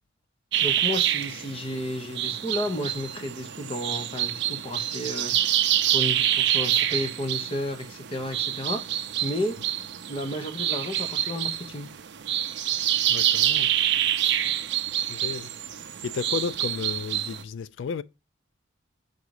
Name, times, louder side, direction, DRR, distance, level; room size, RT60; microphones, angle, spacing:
sound 1, 0.5-17.4, right 11 dB, 65° right, 0.5 m, -27 dB
voice 1, 0.6-5.3 5.9-8.8 9.2-9.6 10.1-11.9, left 1 dB, 30° left, 1.1 m, -32 dB
voice 2, 13.1-13.7 15.1-15.5 16.0-18.0, left 5 dB, 70° left, 0.3 m, -33 dB
5.8 x 4.0 x 4.8 m
head